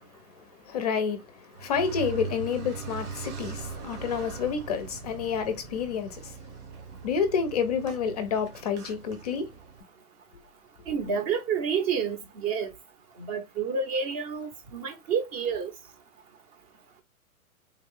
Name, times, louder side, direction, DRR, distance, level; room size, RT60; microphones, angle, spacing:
voice 1, 0.7-1.2 1.6-6.3 7.0-9.5, left 6 dB, 30° left, 0.5 m, -29 dB
Car, 1.5-9.8, right 5 dB, 80° right, 1.6 m, -41 dB
voice 2, 10.9-12.7 13.2-15.7, right 6 dB, 25° right, 0.6 m, -29 dB
3.5 x 2.3 x 3.6 m
hypercardioid pair, 145°, 44 cm